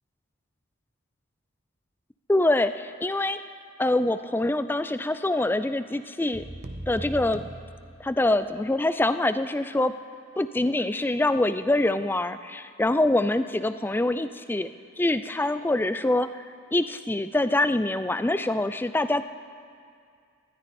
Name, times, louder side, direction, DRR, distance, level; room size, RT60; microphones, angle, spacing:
voice 1, 2.3-3.4 3.8-6.4 6.9-7.4 8.0-9.9 10.4-14.7 15.0-16.4 16.7-19.2, left 2 dB, 10° left, 12 dB, 0.3 m, -25 dB
sound 1, 6.3-8.6, right 1 dB, 35° right, 0.7 m, -39 dB
19.5 x 13.0 x 4.2 m, 2.3 s
head